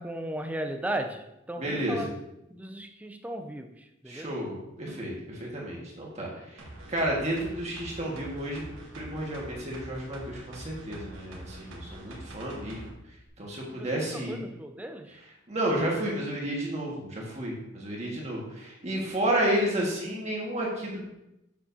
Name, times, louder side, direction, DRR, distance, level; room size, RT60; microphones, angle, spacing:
voice 1, 0.0-2.1 2.5-4.4 13.7-15.2, right 1 dB, 5° right, 7 dB, 0.4 m, -36 dB
voice 2, 1.6-2.1 4.1-6.6 6.9-8.6 8.9-12.8 13.4-14.4 15.5-21.1, right 1 dB, 35° right, -3 dB, 1.7 m, -31 dB
sound 1, 6.6-12.9 13.3-13.4, right 1 dB, 80° right, 1.3 m, -44 dB
7.2 x 7.0 x 2.7 m, 0.88 s
head